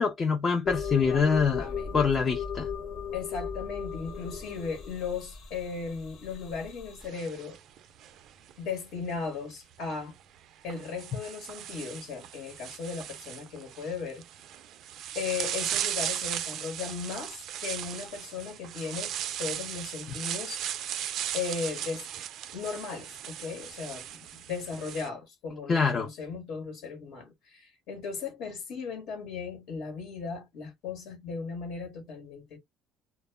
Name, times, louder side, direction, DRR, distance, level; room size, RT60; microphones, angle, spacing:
voice 1, 0.0-1.7 1.9-2.7 25.7-26.1, left 5 dB, 30° left, 0.4 m, -25 dB
sound 1, 0.7-7.1, left 7 dB, 55° left, 0.8 m, -37 dB
voice 2, 1.6-2.0 3.1-7.6 8.6-10.1 10.6-14.2 15.1-20.6 21.3-22.1 22.5-32.6, left 5 dB, 75° left, 1.0 m, -37 dB
sound 2, 7.0-8.5 9.8-9.9 10.7-25.1, right 10 dB, 55° right, 0.3 m, -37 dB
2.0 x 2.0 x 3.2 m
cardioid pair, 145°, 0 cm